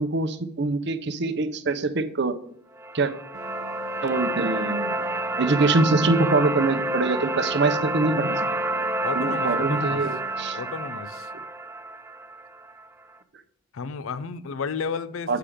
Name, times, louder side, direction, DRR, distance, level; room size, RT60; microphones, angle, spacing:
voice 1, 0.0-2.3 2.9-3.1 4.0-5.0 5.4-8.5 9.2-10.1 10.4-10.6 15.3-15.4, right 3 dB, 55° right, 0.6 m, -24 dB
sound 1, 2.8-12.8, right 2 dB, 10° right, 0.4 m, -29 dB
sound 2, 3.3-11.5, right 2 dB, 85° right, 0.8 m, -45 dB
voice 2, 9.0-10.1 10.5-11.3 13.7-15.4, left 5 dB, 75° left, 0.5 m, -32 dB
8.5 x 5.8 x 5.0 m
head